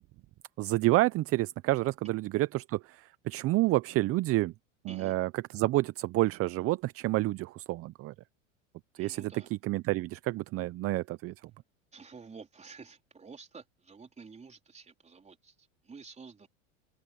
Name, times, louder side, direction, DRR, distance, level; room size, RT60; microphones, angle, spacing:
voice 1, 0.6-3.0 3.3-4.5 4.8-8.1 9.0-9.3 9.6-11.3, right 18 dB, 40° right, 0.7 m, -29 dB
voice 2, 9.0-9.5 11.9-16.5, right 5 dB, 20° right, 4.2 m, -50 dB
hypercardioid pair, 110°, 37 cm